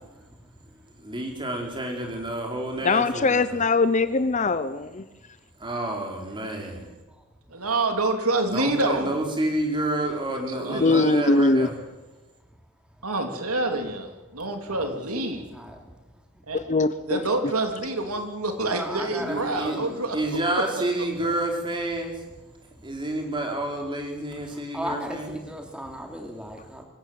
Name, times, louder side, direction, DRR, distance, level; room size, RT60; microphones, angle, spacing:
voice 1, 1.0-3.6 5.6-6.8 8.5-11.7 19.2-19.8 20.1-22.1 22.8-25.3, right 1 dB, 20° right, 2 dB, 4.3 m, -29 dB
voice 2, 2.8-5.0 10.7-11.7 16.5-17.2, left 3 dB, 35° left, 14 dB, 0.7 m, -21 dB
voice 3, 7.5-9.1 10.5-11.1 13.0-15.4 16.5-16.6 17.1-20.2 20.5-20.6, right 2 dB, 80° right, 5 dB, 3.1 m, -27 dB
voice 4, 15.3-15.9 18.7-20.0 24.4-26.8, equal, 5° right, 2 dB, 2.9 m, -36 dB
24.5 x 16.0 x 7.7 m, 1.1 s
head